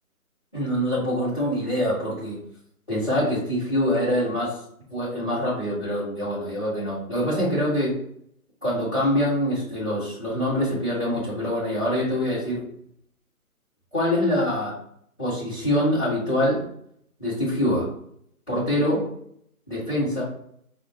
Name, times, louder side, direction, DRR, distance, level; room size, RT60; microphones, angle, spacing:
voice 1, 0.5-2.4 2.9-4.6 4.9-7.9 8.6-12.6 13.9-14.7 15.2-16.6 17.2-17.9 18.5-19.1 19.7-20.2, equal, 5° left, -15 dB, 1.4 m, -24 dB
5.1 x 2.4 x 2.7 m, 0.69 s
hypercardioid pair, 180°, 44 cm